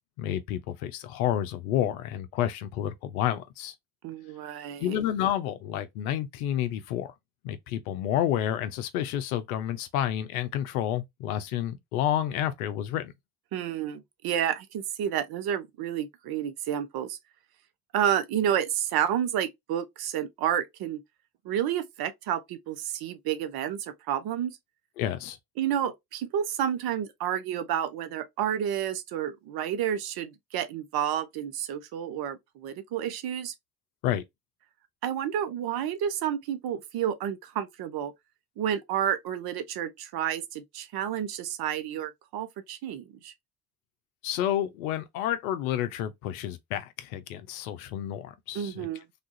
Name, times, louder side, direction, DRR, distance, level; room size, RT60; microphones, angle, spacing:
voice 1, 0.2-3.7 4.8-7.1 7.4-13.1 25.0-25.4 34.0-34.2 44.2-48.9, left 11 dB, 85° left, 0.5 m, -30 dB
voice 2, 4.0-5.0 13.5-17.2 17.9-21.0 21.4-24.5 25.6-33.5 35.0-38.1 38.6-43.3 48.5-49.0, right 9 dB, 60° right, 0.8 m, -30 dB
3.4 x 2.4 x 2.6 m
hypercardioid pair, 55°, 42 cm